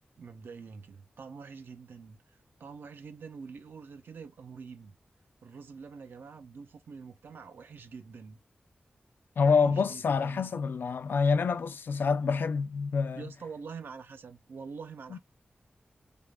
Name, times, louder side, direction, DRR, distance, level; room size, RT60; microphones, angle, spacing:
voice 1, 0.2-2.2 2.6-4.9 5.4-8.4 9.4-10.5 13.2-15.2, right 5 dB, 85° right, 0.4 m, -45 dB
voice 2, 9.4-13.2 15.1-15.2, left 5 dB, 80° left, 0.4 m, -27 dB
3.3 x 2.1 x 2.3 m
wide cardioid pair, 115°, 3 cm